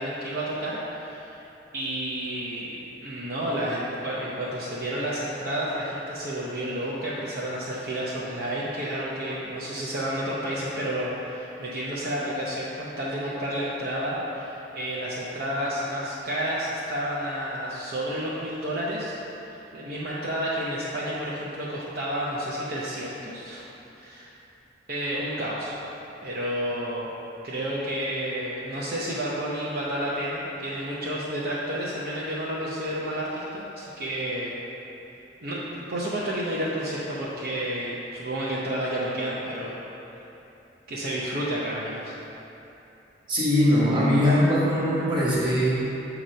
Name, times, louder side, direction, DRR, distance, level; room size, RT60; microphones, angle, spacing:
voice 1, 0.0-1.4 1.7-19.2 19.4-23.6 24.0-24.3 24.9-25.7 26.2-27.1 27.4-34.6 35.4-39.8 40.9-42.2, equal, 55° right, -7 dB, 0.6 m, -30 dB
voice 2, 43.3-46.0, equal, 25° right, -8 dB, 1.3 m, -21 dB
6.4 x 2.9 x 5.1 m, 2.9 s
head